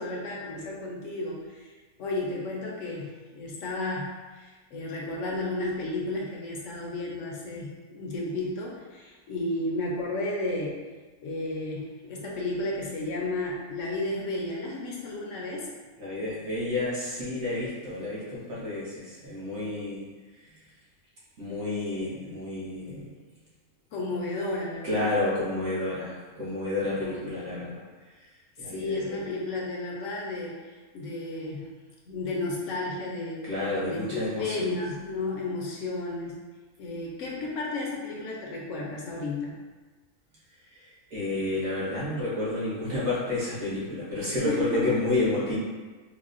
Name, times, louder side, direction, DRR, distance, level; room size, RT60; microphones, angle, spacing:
voice 1, 0.0-1.7 2.0-10.7 11.2-15.7 23.9-25.1 27.0-27.2 28.6-31.7 32.1-33.5 33.8-36.4 36.8-39.6 44.4-45.0, left 2 dB, 65° left, -3 dB, 0.9 m, -33 dB
voice 2, 16.0-20.0 20.4-20.6 21.4-23.1 24.8-28.3 28.6-29.2 33.4-34.7 40.6-45.6, left 2 dB, 55° right, -8 dB, 1.2 m, -30 dB
3.9 x 2.1 x 2.4 m, 1.3 s
omnidirectional pair, 1.5 m